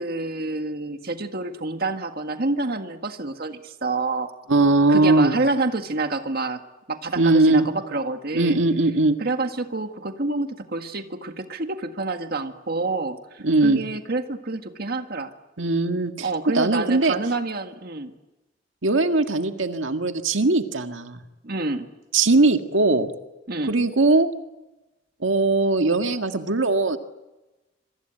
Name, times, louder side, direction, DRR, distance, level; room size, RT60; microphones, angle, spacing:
voice 1, 0.0-4.3 4.9-6.6 6.9-8.6 9.2-15.3 16.2-18.1 21.4-21.9 23.5-23.7, right 3 dB, 50° right, 6 dB, 1.8 m, -28 dB
voice 2, 4.5-5.4 7.2-7.7 8.3-9.2 13.4-13.8 15.6-16.3 16.5-17.2 18.8-21.2 22.1-23.1 23.7-24.3 25.2-27.0, right 2 dB, 85° right, 6 dB, 1.8 m, -20 dB
27.0 x 24.0 x 9.1 m, 1.0 s
head